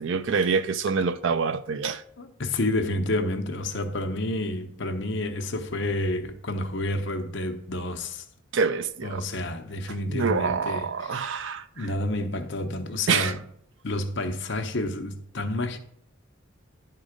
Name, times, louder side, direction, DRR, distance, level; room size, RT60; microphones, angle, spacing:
voice 1, 0.0-2.0 8.5-9.2 10.1-11.6 13.1-13.3, right 5 dB, 60° right, 0.4 m, -26 dB
voice 2, 2.2-8.2 9.0-11.4 11.8-13.4 13.8-15.8, left 1 dB, 55° left, 0.9 m, -29 dB
10.5 x 3.8 x 5.1 m
head